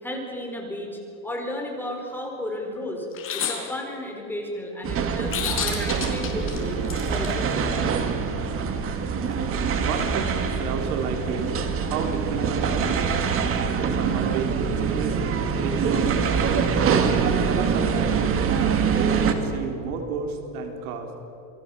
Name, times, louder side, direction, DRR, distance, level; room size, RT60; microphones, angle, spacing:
voice 1, 0.0-3.1 3.3-6.8 7.1-7.7, left 1 dB, 5° left, 1 dB, 4.4 m, -33 dB
sound 1, 3.1-3.6 5.3-7.3, left 8 dB, 30° left, 4.6 m, -29 dB
sound 2, 4.8-19.3, right 6 dB, 30° right, 2.3 m, -24 dB
voice 2, 9.8-11.5 11.9-13.5 14.0-15.2 15.6-17.1 17.5-18.4 18.9-21.1, right 5 dB, 90° right, 4 dB, 4.2 m, -31 dB
28.0 x 21.5 x 7.1 m, 2.9 s
supercardioid pair, 145°, 42 cm